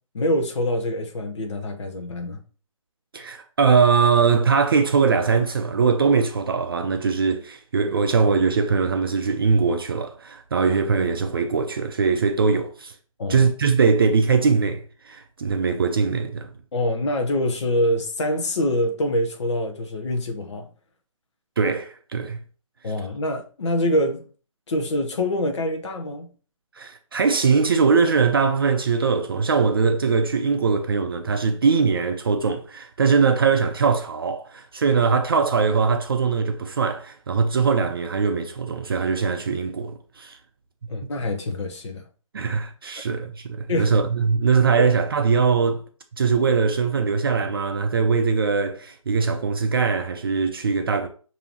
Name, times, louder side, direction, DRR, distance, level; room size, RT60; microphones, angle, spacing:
voice 1, 0.1-2.4 13.2-13.5 16.7-20.7 22.8-24.2 24.7-26.3 40.9-42.0 43.7-44.0 44.8-44.9, left 1 dB, 55° left, 0.7 m, -25 dB
voice 2, 3.1-12.9 13.3-16.5 21.6-22.4 26.8-40.4 42.3-45.8 46.2-51.1, right 5 dB, 40° right, 0.4 m, -21 dB
6.7 x 2.7 x 2.9 m
figure-of-eight pair, 150°, 18 cm